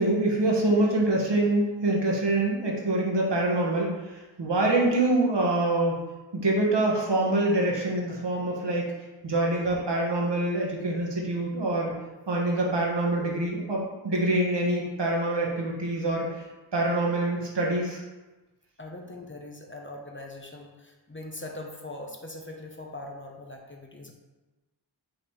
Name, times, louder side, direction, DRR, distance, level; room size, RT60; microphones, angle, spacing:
voice 1, 0.0-6.0 6.3-8.9 9.2-11.9 12.3-16.4 16.7-18.0, right 2 dB, 60° right, -2 dB, 1.6 m, -25 dB
voice 2, 18.8-24.1, left 2 dB, 25° left, 1 dB, 1.0 m, -41 dB
5.4 x 3.9 x 4.8 m, 1.1 s
cardioid pair, 50°, 47 cm